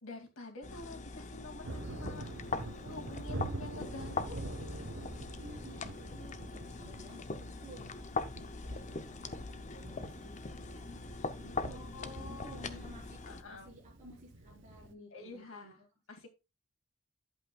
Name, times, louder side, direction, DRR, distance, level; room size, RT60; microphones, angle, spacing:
voice 1, 0.0-4.4 11.6-12.7 13.3-13.7 15.1-15.8 16.1-16.3, left 2 dB, 75° left, 2 dB, 2.3 m, -48 dB
sound 1, 0.6-13.4, left 3 dB, 35° left, 0.6 m, -42 dB
Thunder, 1.6-14.9, right 2 dB, 60° right, 0.9 m, -46 dB
voice 2, 5.4-8.0 8.6-9.4 9.8-11.0 11.4-11.9 12.2-15.7, equal, 35° right, -2 dB, 4.4 m, -54 dB
11.5 x 7.7 x 2.3 m, 0.26 s
head